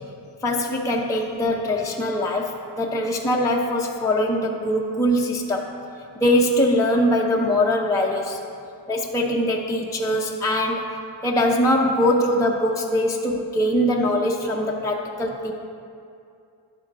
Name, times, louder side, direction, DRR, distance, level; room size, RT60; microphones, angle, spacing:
voice 1, 0.4-5.7 6.2-8.4 8.9-10.9 11.2-15.5, left 1 dB, 5° left, -1 dB, 0.6 m, -22 dB
11.0 x 7.8 x 4.1 m, 2.5 s
cardioid pair, 115°, 47 cm